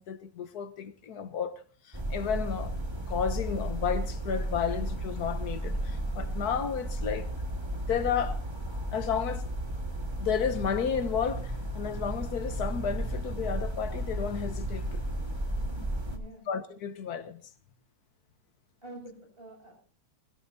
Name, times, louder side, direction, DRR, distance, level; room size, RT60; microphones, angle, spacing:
voice 1, 0.0-1.6 1.9-2.8 3.1-7.3 7.9-8.4 8.9-9.4 10.2-15.0 16.5-17.4, left 7 dB, 85° left, 1.6 m, -32 dB
sound 1, 1.9-16.2, right 1 dB, 15° right, 1.8 m, -34 dB
voice 2, 15.6-16.5 18.8-19.8, right 1 dB, 35° right, 7.0 m, -48 dB
21.0 x 16.5 x 2.7 m
omnidirectional pair, 1.6 m